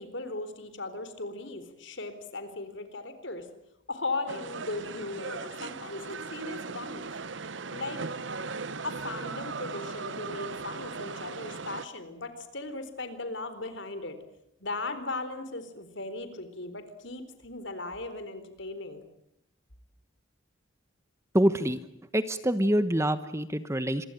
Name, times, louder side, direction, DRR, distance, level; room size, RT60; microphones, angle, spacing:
voice 1, 0.0-3.5 3.9-7.1 7.7-8.0 8.8-14.2 14.6-19.0, left 2 dB, 60° left, 10 dB, 4.0 m, -37 dB
sound 1, 4.3-11.9, right 4 dB, 65° right, 1.0 m, -38 dB
voice 2, 21.3-21.8 22.1-24.0, right 1 dB, 15° right, 12 dB, 1.0 m, -25 dB
27.0 x 22.5 x 9.2 m, 0.80 s
head